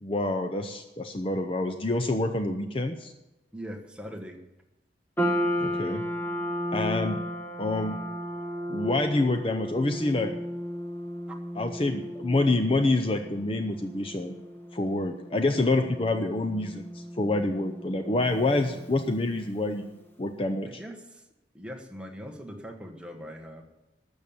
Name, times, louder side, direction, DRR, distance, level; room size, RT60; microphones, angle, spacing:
voice 1, 0.0-3.1 5.6-6.0 6.7-7.2 7.6-8.0 8.7-10.3 11.6-14.3 14.7-19.9 20.2-20.8, left 2 dB, 30° left, 6 dB, 0.6 m, -27 dB
voice 2, 3.5-4.4 20.7-21.3 21.5-23.6, equal, 5° right, 2 dB, 1.3 m, -41 dB
sound 1, 5.2-19.6, equal, 10° left, 1.6 m, -34 dB
12.5 x 7.1 x 8.6 m, 0.99 s
head